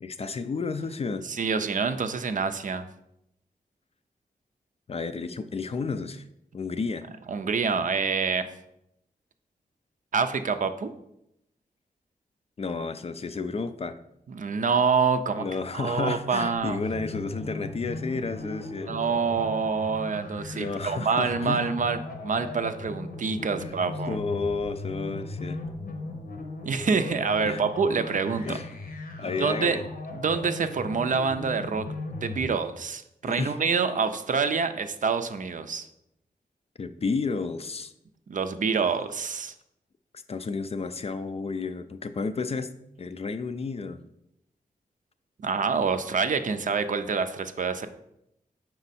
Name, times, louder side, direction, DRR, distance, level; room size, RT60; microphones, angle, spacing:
voice 1, 0.0-1.2 4.9-6.2 6.5-7.1 12.6-14.0 15.4-18.9 20.5-21.7 23.6-25.6 27.4-27.6 28.4-28.7 29.2-29.8 33.2-33.6 36.8-37.9 40.3-44.0, left 4 dB, 40° left, 10 dB, 0.4 m, -32 dB
voice 2, 1.2-2.9 7.3-8.5 10.1-10.9 14.3-15.5 15.7-16.8 18.9-24.2 26.6-28.6 29.4-29.8 30.1-31.8 32.2-35.9 38.3-39.5 45.4-47.9, right 5 dB, 55° right, 9 dB, 0.4 m, -26 dB
sound 1, 16.5-32.6, left 2 dB, 70° left, 0.9 m, -38 dB
5.2 x 4.4 x 4.1 m, 0.81 s
cardioid pair, 70°, 16 cm